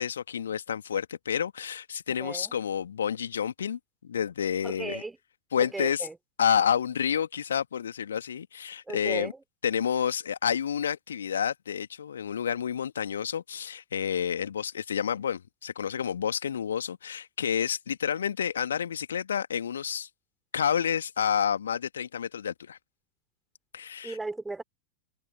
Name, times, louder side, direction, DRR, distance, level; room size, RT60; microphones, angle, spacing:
voice 1, 0.0-5.0 5.5-6.1 6.4-9.3 9.6-20.1 20.5-22.8 23.7-24.2, left 8 dB, 65° left, 2.4 m, -29 dB
voice 2, 2.2-2.5 4.6-5.2 5.6-6.1 8.9-9.3 24.0-24.6, right 3 dB, 10° right, 4.2 m, -36 dB
figure-of-eight pair, 90°, 0 cm